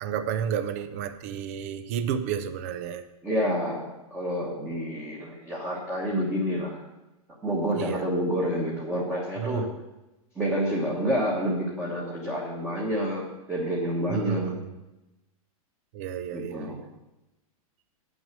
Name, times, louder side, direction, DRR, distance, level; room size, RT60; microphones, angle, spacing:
voice 1, 0.0-3.0 7.8-8.1 9.4-9.7 14.1-14.5 15.9-16.8, right 8 dB, 25° right, 11 dB, 0.4 m, -31 dB
voice 2, 3.2-6.8 7.4-9.6 10.3-13.2 13.5-14.5 16.3-16.8, equal, 5° right, -5 dB, 1.1 m, -28 dB
8.8 x 6.2 x 7.5 m, 1.0 s
supercardioid pair, 175°, 19 cm